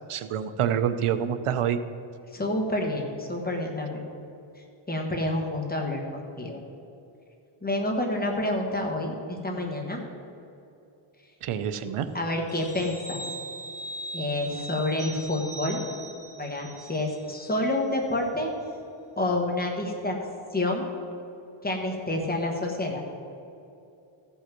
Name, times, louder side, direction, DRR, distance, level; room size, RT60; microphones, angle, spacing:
voice 1, 0.1-1.8 11.4-12.1, right 9 dB, 90° right, 11 dB, 0.7 m, -27 dB
voice 2, 2.3-4.0 4.6-6.6 7.6-10.0 12.1-13.2 14.1-15.8 16.4-18.5 19.2-20.1 20.5-20.9 21.6-23.0, left 1 dB, 20° left, 0 dB, 1.3 m, -28 dB
sound 1, 12.5-17.6 17.9-18.1, right 1 dB, 15° right, 2.0 m, -40 dB
14.5 x 5.6 x 5.9 m, 2.7 s
wide cardioid pair, 170°, 49 cm